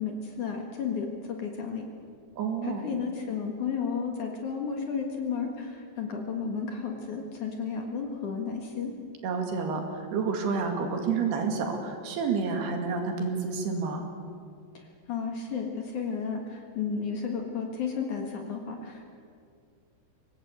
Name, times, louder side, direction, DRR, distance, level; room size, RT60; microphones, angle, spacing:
voice 1, 0.0-1.8 2.6-8.9 14.7-19.1, left 6 dB, 55° left, 2 dB, 2.7 m, -33 dB
voice 2, 2.4-2.9 9.2-14.1, right 5 dB, 70° right, 3 dB, 4.1 m, -29 dB
24.5 x 18.0 x 8.1 m, 2.2 s
omnidirectional pair, 4.9 m